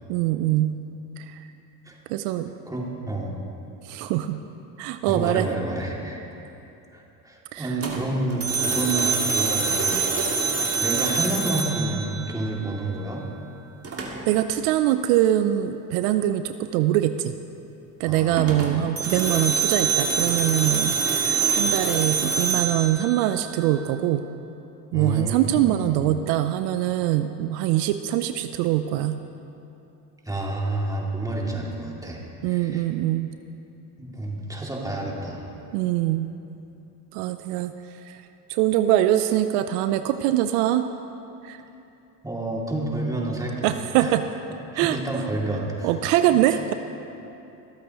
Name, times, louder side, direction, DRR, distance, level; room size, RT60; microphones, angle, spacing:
voice 1, 0.1-0.8 1.2-1.4 2.1-2.5 3.8-4.4 4.8-5.5 7.5-7.7 14.3-17.3 18.0-24.2 24.9-29.2 32.4-33.3 35.7-36.3 37.1-37.7 38.1-38.2 38.5-40.9 41.4-41.6 43.6-44.2 44.8-45.0 45.8-46.7, right 13 dB, 75° right, 10 dB, 0.6 m, -23 dB
voice 2, 2.7-3.3 5.1-6.2 6.9-10.2 10.8-13.3 18.1-18.7 19.1-19.2 24.9-25.9 30.3-32.9 34.0-35.4 42.2-43.7 44.0-44.2 44.7-45.9 46.3-46.6, right 2 dB, 10° right, -3 dB, 2.4 m, -29 dB
sound 1, 7.8-12.8 13.8-14.4 18.3-23.8, right 5 dB, 30° right, 1.9 m, -25 dB
25.0 x 8.3 x 3.0 m, 2.9 s
supercardioid pair, 75°, 46 cm